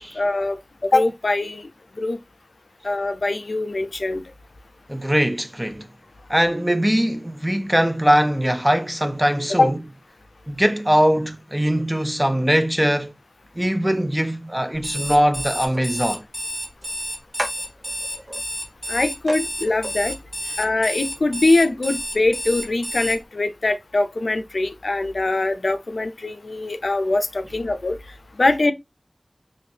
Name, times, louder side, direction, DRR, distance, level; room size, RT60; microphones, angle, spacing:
voice 1, 0.1-1.7 2.0-2.2 2.8-4.2 9.6-9.7 18.9-20.1 20.6-28.0 28.4-28.7, left 2 dB, 85° left, 0.4 m, -22 dB
voice 2, 4.9-5.9 6.3-9.8 10.5-13.1 13.6-16.2, equal, 15° right, 0.5 m, -21 dB
Alarm, 14.7-23.2, equal, 35° right, 1.1 m, -30 dB
sound 1, 15.6-15.8 16.8-16.9 17.3-18.4 18.8-18.9 19.3-19.4 19.6-20.0, right 1 dB, 80° right, 0.9 m, -33 dB
3.3 x 2.5 x 2.6 m
wide cardioid pair, 50°, 0 cm